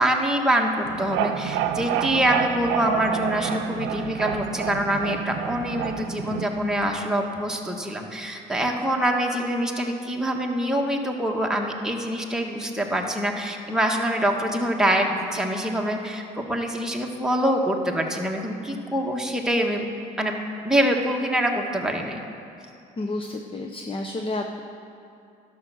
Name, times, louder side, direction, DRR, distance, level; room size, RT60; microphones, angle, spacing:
voice 1, 0.0-19.8 20.2-20.4 20.6-22.2, right 1 dB, 5° right, 0 dB, 1.5 m, -25 dB
sound 1, 0.8-6.9, right 9 dB, 85° right, 0.6 m, -29 dB
voice 2, 23.0-24.6, left 2 dB, 30° left, 4 dB, 0.8 m, -30 dB
11.5 x 6.7 x 6.2 m, 2.6 s
supercardioid pair, 75°, 19 cm